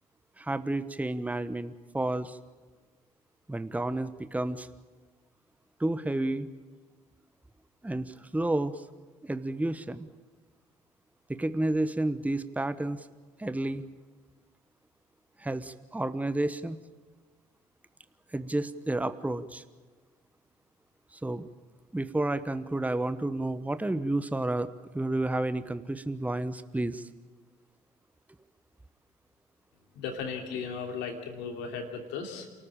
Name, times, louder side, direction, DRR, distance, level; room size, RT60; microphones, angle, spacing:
voice 1, 0.4-2.4 3.5-4.7 5.8-6.5 7.8-8.8 9.2-10.1 11.3-13.1 13.4-13.8 15.4-16.8 18.3-19.6 21.1-21.5 21.9-24.7 24.9-27.1, right 2 dB, 10° right, 13 dB, 1.0 m, -31 dB
voice 2, 29.9-32.5, left 5 dB, 70° left, 4 dB, 3.0 m, -36 dB
28.5 x 14.0 x 8.9 m, 1.4 s
hypercardioid pair, 50°, 19 cm